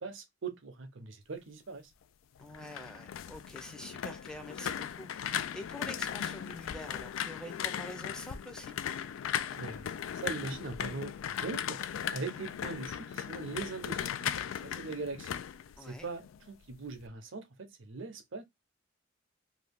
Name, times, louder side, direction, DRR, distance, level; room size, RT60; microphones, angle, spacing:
voice 1, 0.0-1.9 9.6-9.9 10.2-11.8 12.1-15.4 15.9-18.4, right 4 dB, 65° right, 0.7 m, -41 dB
sound 1, 2.4-16.4 16.7-17.1, left 9 dB, 80° left, 0.3 m, -37 dB
voice 2, 2.4-8.7 15.8-16.1, left 1 dB, 5° left, 0.6 m, -46 dB
2.8 x 2.4 x 3.4 m
head